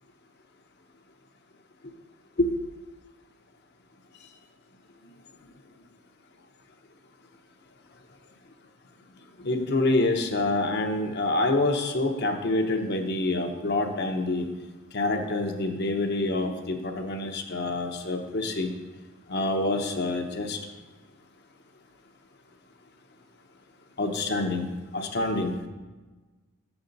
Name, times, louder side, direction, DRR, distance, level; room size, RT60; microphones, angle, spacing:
voice 1, 9.4-14.5 14.9-18.7 19.3-20.6 24.0-25.5, left 2 dB, 45° left, 4 dB, 0.7 m, -27 dB
7.3 x 7.0 x 3.9 m, 1.2 s
head